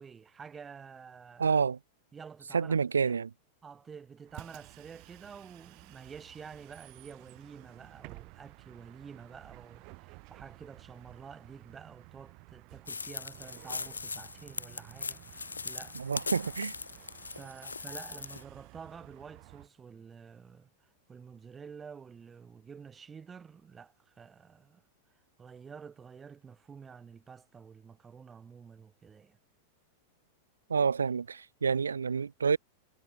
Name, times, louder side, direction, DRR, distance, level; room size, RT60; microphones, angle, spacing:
voice 1, 0.0-1.6 2.1-3.2 3.6-16.0 17.3-24.8 25.4-29.4, right 6 dB, 20° right, 2.8 m, -49 dB
voice 2, 1.4-1.8 2.5-3.3 16.0-16.7 30.7-32.6, right 6 dB, 85° right, 0.5 m, -28 dB
Bus, 4.3-19.7, right 29 dB, 50° right, 1.3 m, -53 dB
sound 1, 12.9-18.4, left 4 dB, 90° left, 0.4 m, -40 dB
hypercardioid pair, 95°, 0 cm